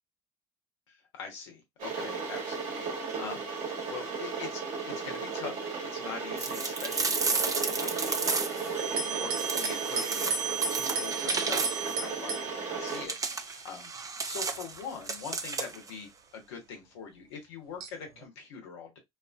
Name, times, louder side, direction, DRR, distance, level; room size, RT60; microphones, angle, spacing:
voice 1, 0.9-3.5 3.9-19.0, left 6 dB, 80° left, 1.0 m, -44 dB
Water / Boiling, 1.8-13.1, right 4 dB, 60° right, 1.3 m, -35 dB
sound 1, 6.4-8.7 9.4-12.0 12.9-15.9, right 4 dB, 25° right, 0.5 m, -33 dB
sound 2, 8.7-13.5 14.3-14.8 15.5-15.6 17.8-18.3, right 5 dB, 75° right, 0.7 m, -35 dB
2.8 x 2.5 x 2.4 m
hypercardioid pair, 60°, 15 cm